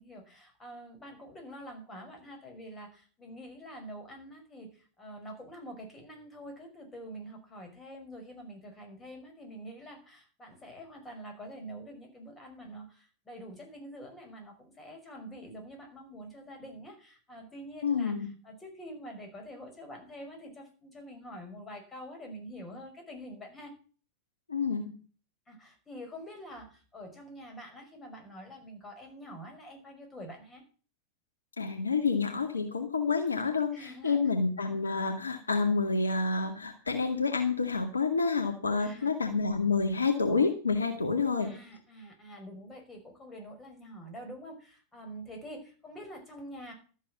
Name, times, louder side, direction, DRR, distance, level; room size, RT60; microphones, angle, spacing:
voice 1, 0.0-18.2 18.4-23.7 25.5-30.6 33.7-34.4 38.8-39.1 41.4-46.7, equal, 15° left, 3 dB, 5.8 m, -46 dB
voice 2, 17.8-18.3 24.5-24.9 31.6-41.5, left 4 dB, 75° left, 5 dB, 2.1 m, -28 dB
13.0 x 8.3 x 7.5 m, 0.40 s
figure-of-eight pair, 90°, 0 cm